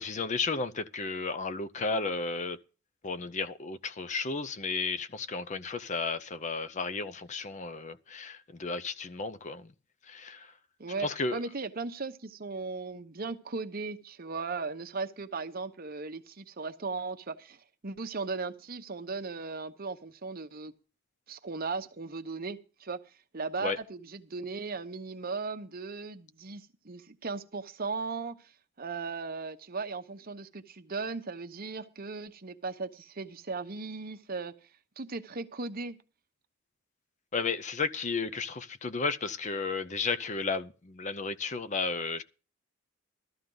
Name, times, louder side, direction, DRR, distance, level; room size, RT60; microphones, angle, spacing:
voice 1, 0.0-2.6 3.0-9.7 10.0-10.6 11.0-11.4 23.6-23.8 37.3-42.2, left 4 dB, 35° left, 0.6 m, -33 dB
voice 2, 10.8-20.7 21.3-23.0 23.3-28.4 28.8-34.5 35.0-36.0, right 4 dB, 45° right, 0.9 m, -37 dB
15.0 x 13.0 x 3.9 m
head